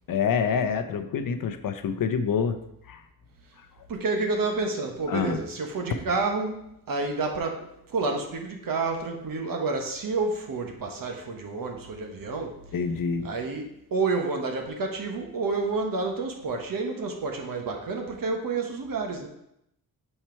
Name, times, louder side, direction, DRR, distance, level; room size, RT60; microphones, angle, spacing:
voice 1, 0.1-2.6 2.9-3.0 5.1-5.4 12.7-13.3, left 6 dB, 60° left, 9 dB, 0.7 m, -26 dB
voice 2, 3.9-6.6 6.9-12.6 13.2-13.6 13.9-19.3, right 3 dB, 60° right, 3 dB, 1.3 m, -29 dB
5.6 x 4.4 x 4.5 m, 0.78 s
cardioid pair, 70°, 38 cm